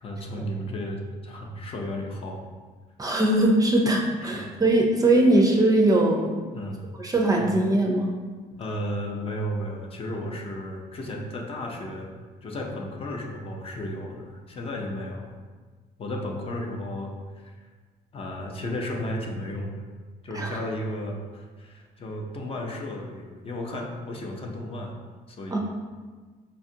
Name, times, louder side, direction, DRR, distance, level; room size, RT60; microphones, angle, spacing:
voice 1, 0.0-2.5 4.2-4.5 6.5-6.9 7.4-7.5 8.6-12.1 12.4-15.3 16.0-17.7 18.1-19.8 20.2-25.0 25.3-25.6, left 1 dB, 35° left, 1 dB, 0.6 m, -34 dB
voice 2, 3.0-6.4 7.0-8.1 20.4-20.6 25.5-25.6, right 1 dB, 20° right, 0 dB, 0.4 m, -21 dB
5.1 x 2.3 x 2.7 m, 1.4 s
cardioid pair, 110°, 17 cm